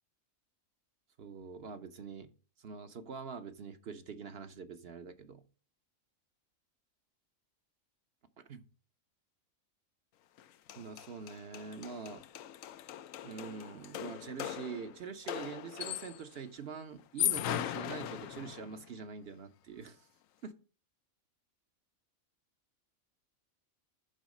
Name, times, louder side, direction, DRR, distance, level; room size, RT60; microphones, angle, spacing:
voice 1, 1.2-2.3 2.6-5.4 8.5-8.6 10.8-12.2 13.2-20.0 20.4-20.5, right 6 dB, 55° right, 1.0 m, -44 dB
sound 1, 10.4-10.5 10.7-16.3 17.0-18.8, left 12 dB, 80° left, 1.0 m, -38 dB
12.0 x 4.0 x 5.2 m
omnidirectional pair, 1.4 m